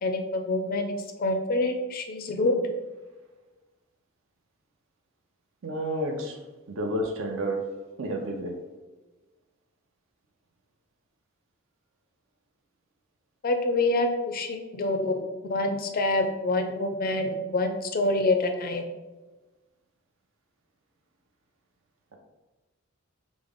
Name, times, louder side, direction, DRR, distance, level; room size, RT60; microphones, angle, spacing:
voice 1, 0.0-2.6 13.4-15.2 15.5-18.8, left 2 dB, 45° left, 5 dB, 0.4 m, -26 dB
voice 2, 5.6-6.4 6.7-8.6, right 1 dB, 65° right, 2 dB, 0.6 m, -31 dB
5.0 x 2.0 x 3.5 m, 1.2 s
head